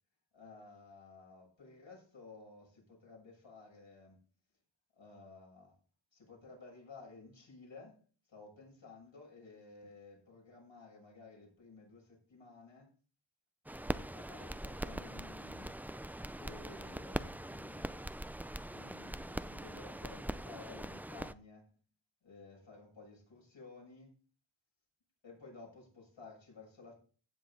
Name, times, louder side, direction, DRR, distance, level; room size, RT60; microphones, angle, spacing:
voice 1, 0.3-4.2 4.9-5.7 6.1-8.0 8.3-12.9 14.1-15.8 16.3-18.2 18.7-21.7 22.2-24.2 25.2-26.9, left 3 dB, 65° left, 6.7 m, -55 dB
sound 1, 13.7-21.3, right 1 dB, 5° right, 0.4 m, -42 dB
15.5 x 7.7 x 4.1 m
wide cardioid pair, 75°, 48 cm